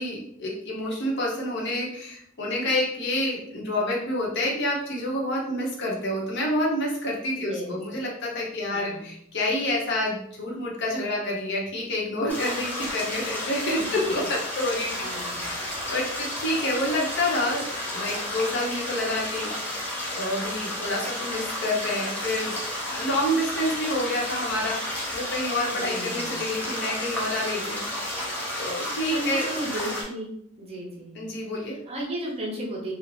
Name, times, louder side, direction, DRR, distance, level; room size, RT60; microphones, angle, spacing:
voice 1, 0.0-15.1 15.4-19.9 20.2-22.5 22.9-27.8 28.6-29.4 31.1-31.8, left 1 dB, 60° left, -2 dB, 0.7 m, -28 dB
voice 2, 7.4-7.8 8.7-9.1 14.9-15.4 25.7-26.3 29.1-30.3 30.6-31.2 31.9-32.9, right 1 dB, 30° right, -2 dB, 0.7 m, -34 dB
sound 1, 12.3-30.0, left 1 dB, 10° left, 0.7 m, -32 dB
2.6 x 2.0 x 3.1 m, 0.70 s
head